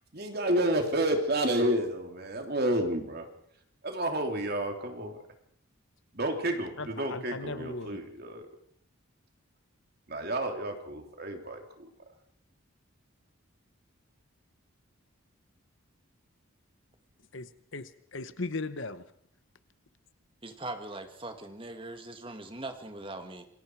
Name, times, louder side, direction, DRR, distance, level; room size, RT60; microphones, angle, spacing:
voice 1, 0.1-3.2 3.8-5.2 6.1-8.4 10.1-11.9, right 1 dB, 45° right, 4 dB, 3.1 m, -30 dB
voice 2, 6.8-8.0 17.3-19.0, left 3 dB, 60° left, 13 dB, 1.0 m, -38 dB
voice 3, 20.4-23.5, right 2 dB, 25° right, 6 dB, 1.9 m, -41 dB
27.5 x 21.5 x 4.7 m, 0.67 s
head